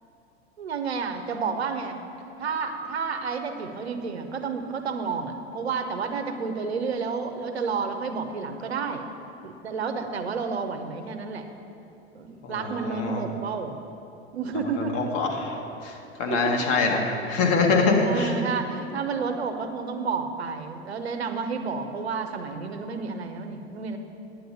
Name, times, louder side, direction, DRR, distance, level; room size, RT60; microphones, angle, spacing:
voice 1, 0.6-2.0 2.4-9.1 9.4-11.5 12.1-13.8 14.3-15.1 16.3-16.6 18.0-24.0, right 5 dB, 70° right, 6 dB, 1.0 m, -30 dB
voice 2, 12.4-13.2 14.8-15.6 15.8-18.3, left 3 dB, 45° left, 1 dB, 1.8 m, -24 dB
9.6 x 9.2 x 6.8 m, 3.0 s
figure-of-eight pair, 85°, 33 cm